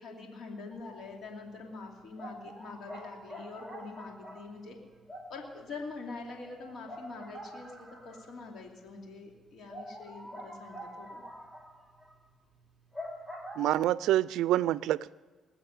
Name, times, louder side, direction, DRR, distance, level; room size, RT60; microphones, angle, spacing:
voice 1, 0.0-4.8 5.3-11.2, left 3 dB, 70° left, 1 dB, 2.8 m, -44 dB
sound 1, 0.7-1.1 1.5-1.6 2.2-8.5 8.9-9.0 9.3-9.4 9.7-13.8, equal, ahead, 2.9 m, -46 dB
voice 2, 13.6-15.2, right 13 dB, 90° right, 19 dB, 0.4 m, -27 dB
21.0 x 7.5 x 7.1 m, 1.4 s
cardioid pair, 90°, 0 cm